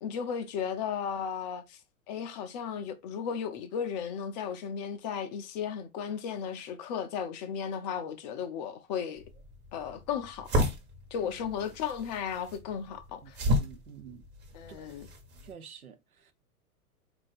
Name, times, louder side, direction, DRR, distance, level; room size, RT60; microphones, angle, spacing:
voice 1, 0.0-1.8 2.1-9.2 9.7-10.7 11.1-13.4 14.5-15.1, left 7 dB, 30° left, 0.5 m, -35 dB
sound 1, 9.2-15.5, equal, 25° right, 1.1 m, -33 dB
voice 2, 13.2-14.3 14.7-14.9 15.4-16.3, right 8 dB, 75° right, 0.8 m, -49 dB
4.0 x 2.5 x 4.0 m
figure-of-eight pair, 95°, 44 cm